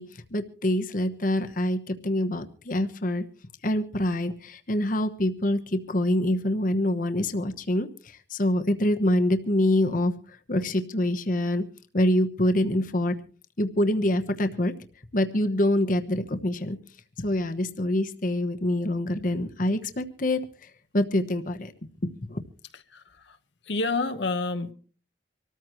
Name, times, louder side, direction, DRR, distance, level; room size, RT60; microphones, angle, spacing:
voice 1, 0.0-3.3 3.6-10.1 10.5-11.6 11.9-13.2 13.6-14.7 15.1-16.8 17.2-21.7 22.2-22.4, left 1 dB, 45° left, 8 dB, 1.1 m, -25 dB
voice 2, 22.7-23.4 23.6-24.7, left 3 dB, 70° left, 8 dB, 1.1 m, -29 dB
25.5 x 14.0 x 3.1 m, 0.40 s
head